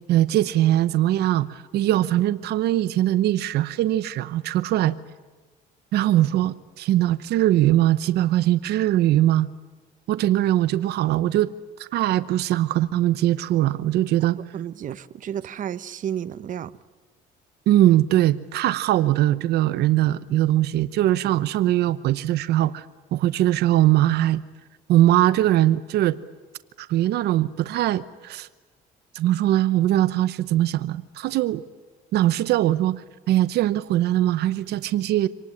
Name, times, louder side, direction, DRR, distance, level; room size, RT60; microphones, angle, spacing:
voice 1, 0.1-4.9 5.9-9.5 10.1-11.5 11.8-14.4 17.7-22.9 23.1-24.4 24.9-26.2 26.8-28.5 29.1-31.6 32.1-35.3, right 14 dB, 75° right, 14 dB, 0.9 m, -21 dB
voice 2, 14.5-16.8, right 9 dB, 50° right, 13 dB, 1.0 m, -32 dB
26.5 x 19.5 x 9.8 m, 1.3 s
cardioid pair, 110°, 17 cm